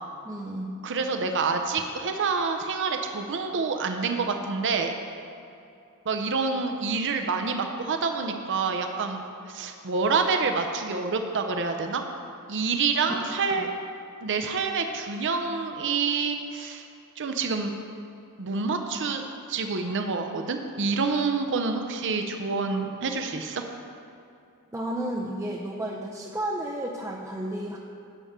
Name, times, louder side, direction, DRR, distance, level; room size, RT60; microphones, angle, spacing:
voice 1, 0.2-0.7 13.1-13.2 13.5-13.7 24.7-27.8, right 1 dB, 10° right, -3 dB, 0.6 m, -32 dB
voice 2, 0.8-4.9 6.1-12.0 12.5-13.7 14.2-16.8 17.2-17.7 18.4-23.6, right 4 dB, 55° right, 5 dB, 0.6 m, -27 dB
11.0 x 8.3 x 3.7 m, 2.6 s
head